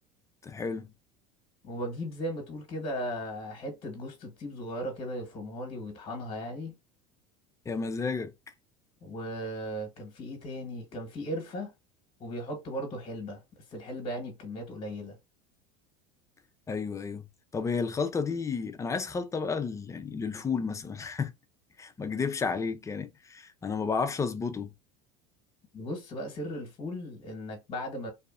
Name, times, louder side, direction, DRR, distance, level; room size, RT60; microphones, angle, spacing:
voice 1, 0.4-0.9 7.7-8.3 16.7-17.2 17.5-21.3 21.8-24.7, left 5 dB, 20° left, 0.4 m, -32 dB
voice 2, 1.6-6.7 9.0-11.7 12.2-13.4 13.7-15.2 25.7-28.1, equal, 35° left, 1.1 m, -37 dB
2.7 x 2.3 x 2.4 m
supercardioid pair, 100°, 16 cm